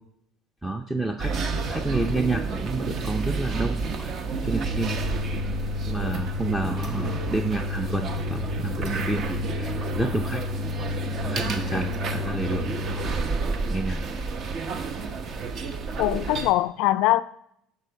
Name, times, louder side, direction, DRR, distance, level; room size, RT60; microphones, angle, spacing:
voice 1, 0.6-1.3 1.6-4.9 5.9-10.4 11.2-14.0, right 2 dB, 5° right, 0.6 m, -30 dB
sound 1, 1.2-16.5, right 1 dB, 45° right, 0.9 m, -29 dB
voice 2, 16.0-17.2, left 16 dB, 70° left, 0.3 m, -22 dB
13.0 x 5.0 x 4.6 m
supercardioid pair, 105°, 0 cm